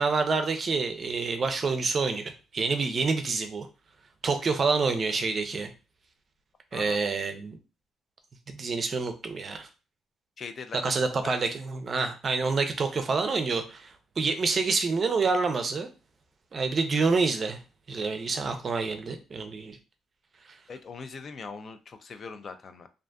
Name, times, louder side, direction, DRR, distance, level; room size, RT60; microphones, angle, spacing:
voice 1, 0.0-3.7 4.2-5.7 6.7-7.6 8.5-9.7 10.8-15.9 16.5-17.6 17.9-19.8, right 4 dB, 45° right, 7 dB, 0.4 m, -27 dB
voice 2, 10.4-10.9 11.2-11.3 20.7-22.9, left 5 dB, 50° left, 9 dB, 0.3 m, -41 dB
2.5 x 2.4 x 2.3 m, 0.31 s
cardioid pair, 90°, 0 cm